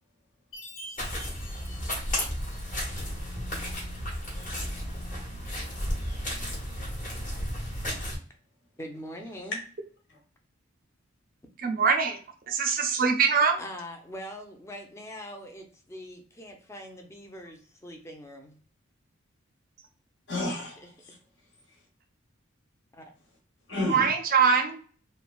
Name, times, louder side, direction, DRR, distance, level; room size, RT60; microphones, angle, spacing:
Chime, 0.5-3.0, equal, 85° left, 1.2 m, -46 dB
voice 1, 0.7-1.2 3.3-4.0 6.2-6.9 9.4-9.6 10.1-10.2 20.3-21.9 23.7-24.1, left 2 dB, 60° left, -1 dB, 1.1 m, -36 dB
sound 1, 1.0-8.2, equal, 40° left, 1.1 m, -33 dB
voice 2, 8.8-9.6 13.6-18.6 22.9-23.1, equal, 15° left, 3 dB, 0.5 m, -42 dB
voice 3, 11.6-12.2 12.5-13.6 23.9-24.8, right 6 dB, 45° right, 6 dB, 0.5 m, -23 dB
3.2 x 2.2 x 2.3 m, 0.43 s
head